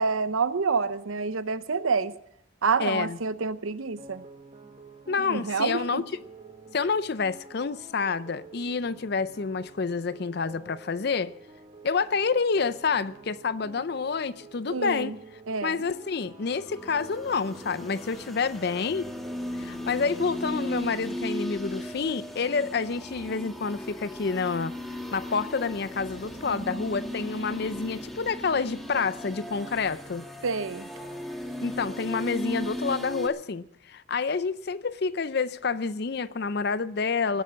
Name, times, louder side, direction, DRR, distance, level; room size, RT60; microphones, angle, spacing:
voice 1, 0.0-2.1 2.6-4.2 5.2-6.0 14.7-15.2 15.5-15.8 30.4-30.9, right 4 dB, 85° right, 0.7 m, -28 dB
voice 2, 2.8-3.2 5.1-6.0 6.7-11.3 11.8-15.2 15.6-19.1 19.6-24.7 25.1-30.3 31.6-37.4, left 5 dB, 50° left, 0.5 m, -28 dB
sound 1, 4.0-21.1, right 3 dB, 25° right, 1.2 m, -49 dB
sound 2, 16.4-33.3, equal, ahead, 1.5 m, -37 dB
19.5 x 8.4 x 7.4 m
head